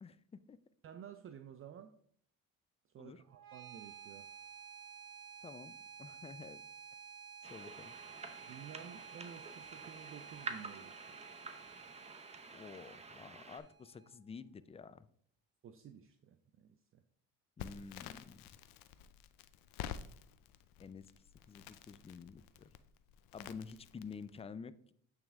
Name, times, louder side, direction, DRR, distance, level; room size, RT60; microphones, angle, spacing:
voice 1, 0.0-0.6 3.0-3.2 5.4-5.7 6.0-6.6 7.5-7.9 12.5-15.1 17.6-18.5 20.8-21.1 21.5-22.7 23.3-24.9, left 5 dB, 20° left, 15 dB, 0.4 m, -50 dB
voice 2, 0.8-2.0 2.9-4.3 8.4-11.3 15.6-17.0, right 8 dB, 40° right, 8 dB, 0.5 m, -53 dB
sound 1, 3.3-14.3, right 7 dB, 70° right, 1.2 m, -53 dB
sound 2, 7.4-13.6, right 3 dB, 20° right, 0.8 m, -49 dB
Crackle, 17.6-24.4, left 9 dB, 80° left, 0.5 m, -50 dB
8.7 x 3.5 x 3.5 m, 0.63 s
supercardioid pair, 75°, 33 cm